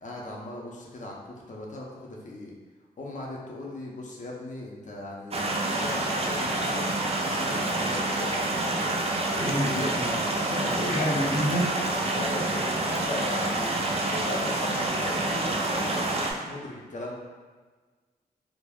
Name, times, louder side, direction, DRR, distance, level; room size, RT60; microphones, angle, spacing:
voice 1, 0.0-2.5 3.0-6.9 7.2-9.0 9.6-11.3 12.1-13.8 14.0-17.2, left 1 dB, 50° left, -3 dB, 0.6 m, -38 dB
sound 1, 5.3-16.3, right 2 dB, 40° right, 0.4 m, -28 dB
voice 2, 9.4-10.1 10.9-11.7, equal, 90° left, -7 dB, 0.8 m, -28 dB
2.3 x 2.0 x 3.4 m, 1.4 s
cardioid pair, 50°, 17 cm